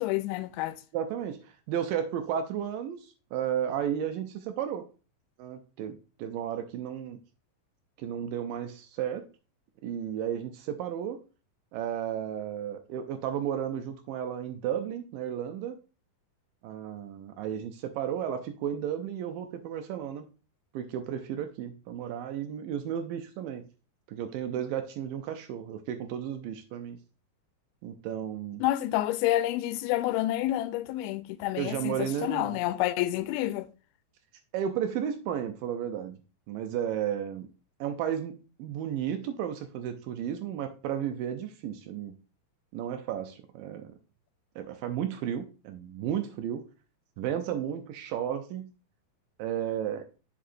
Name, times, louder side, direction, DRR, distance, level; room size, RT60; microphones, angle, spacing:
voice 1, 0.0-0.8 28.6-33.7, left 15 dB, 85° left, 2.4 m, -29 dB
voice 2, 0.9-4.8 5.4-7.2 8.0-9.3 9.8-11.2 11.7-15.8 16.6-20.3 20.7-23.6 24.1-27.0 27.8-28.6 31.6-32.6 34.5-36.2 36.5-37.5 37.8-38.3 38.6-42.2 42.7-43.9 44.6-46.6 47.2-48.7 49.4-50.1, right 9 dB, 80° right, 2.1 m, -33 dB
7.7 x 6.9 x 2.6 m
omnidirectional pair, 4.4 m